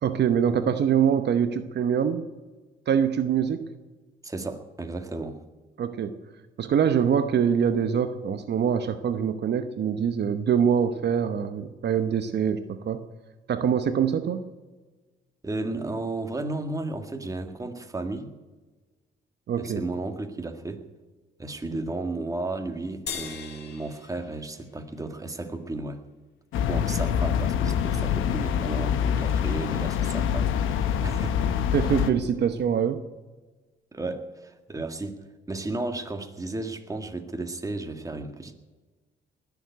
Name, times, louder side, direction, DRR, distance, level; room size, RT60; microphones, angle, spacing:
voice 1, 0.0-2.2 2.9-3.6 5.8-6.2 6.6-13.0 13.5-14.4 19.5-19.8 31.7-33.0, right 8 dB, 60° right, 9 dB, 1.0 m, -24 dB
voice 2, 4.2-5.4 15.4-18.3 19.6-20.8 21.4-26.0 26.7-30.5 30.8-31.6 33.9-35.2 35.5-38.5, right 2 dB, 15° right, 5 dB, 1.8 m, -33 dB
sound 1, 23.1-25.6, left 6 dB, 55° left, 2.0 m, -40 dB
sound 2, 26.5-32.1, left 8 dB, 85° left, 1.1 m, -25 dB
20.0 x 7.2 x 9.2 m, 1.3 s
cardioid pair, 90°, 20 cm